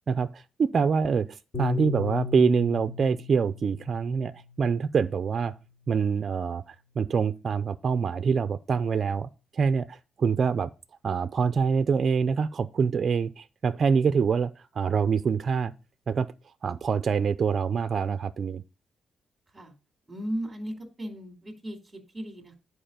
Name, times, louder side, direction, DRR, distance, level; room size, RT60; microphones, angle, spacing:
voice 1, 0.1-4.3 4.6-5.5 5.9-10.7 11.0-15.7 16.1-16.3 16.6-18.6, right 6 dB, 40° right, 0.5 m, -25 dB
Piano, 1.5-6.0, left 5 dB, 40° left, 2.8 m, -37 dB
voice 2, 20.1-22.6, right 1 dB, 15° right, 2.2 m, -36 dB
10.0 x 4.7 x 5.1 m
cardioid pair, 140°, 0 cm